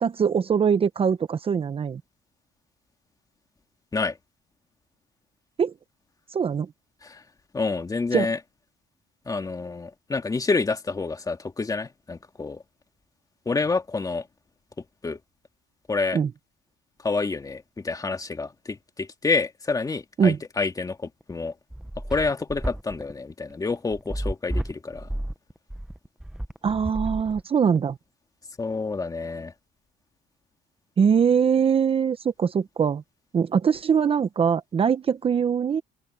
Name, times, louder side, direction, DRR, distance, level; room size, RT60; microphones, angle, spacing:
voice 1, 0.0-2.0 5.6-5.7 6.3-6.7 8.1-8.3 16.1-16.3 20.2-20.4 26.6-28.0 31.0-33.0 33.3-35.8, right 7 dB, 35° right, 0.8 m, -22 dB
voice 2, 7.5-8.4 9.3-12.6 13.5-14.3 15.0-15.2 15.9-16.2 17.0-21.5 22.0-25.1 28.6-29.5, left 4 dB, 20° left, 2.4 m, -28 dB
sound 1, 21.2-27.8, right 1 dB, 5° right, 0.8 m, -32 dB
open air
cardioid pair, 110°, 17 cm